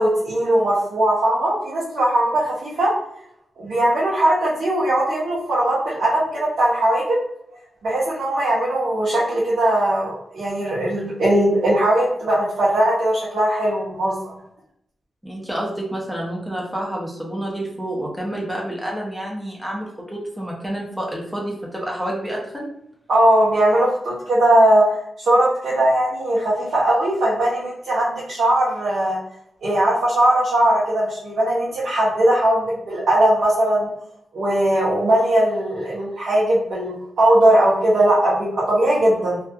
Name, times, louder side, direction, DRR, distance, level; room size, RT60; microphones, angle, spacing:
voice 1, 0.0-2.9 3.6-7.2 7.8-14.3 23.1-29.2 29.6-33.9 34.3-39.4, right 1 dB, 70° right, -8 dB, 0.7 m, -19 dB
voice 2, 15.2-22.7, right 1 dB, ahead, -2 dB, 0.6 m, -29 dB
2.3 x 2.2 x 2.6 m, 0.75 s
wide cardioid pair, 175°, 0 cm